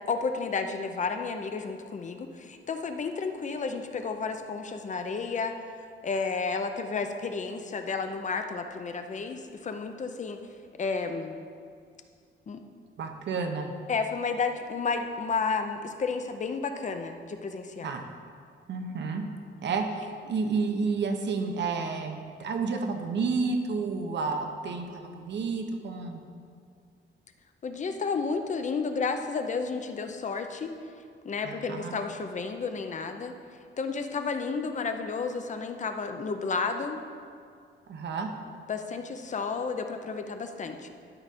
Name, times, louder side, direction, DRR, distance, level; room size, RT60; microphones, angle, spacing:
voice 1, 0.1-5.5 6.0-10.4 10.8-11.4 12.5-12.6 13.9-17.9 27.6-30.7 31.2-33.3 33.8-37.0 38.7-40.9, left 4 dB, 40° left, 6 dB, 0.6 m, -32 dB
voice 2, 13.0-13.7 17.8-18.1 18.7-19.2 19.6-26.2 31.4-32.0 37.9-38.3, right 4 dB, 65° right, 5 dB, 0.9 m, -30 dB
12.0 x 4.9 x 4.2 m, 2.2 s
wide cardioid pair, 135°, 20 cm